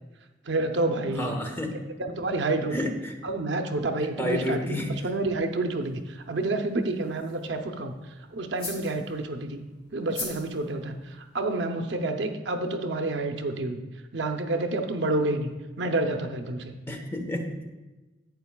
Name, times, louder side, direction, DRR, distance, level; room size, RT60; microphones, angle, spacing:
voice 1, 0.5-1.3 2.0-2.8 3.2-7.9 8.3-9.6 9.9-13.8 14.1-15.5 15.8-16.7, right 2 dB, 70° right, 5 dB, 0.7 m, -29 dB
voice 2, 1.2-1.8 2.7-3.1 4.2-5.1 16.9-17.7, left 1 dB, 15° left, 3 dB, 0.9 m, -30 dB
sound 1, 3.8-11.6, left 2 dB, 30° left, 2.3 m, -45 dB
11.5 x 8.6 x 2.3 m, 1.1 s
head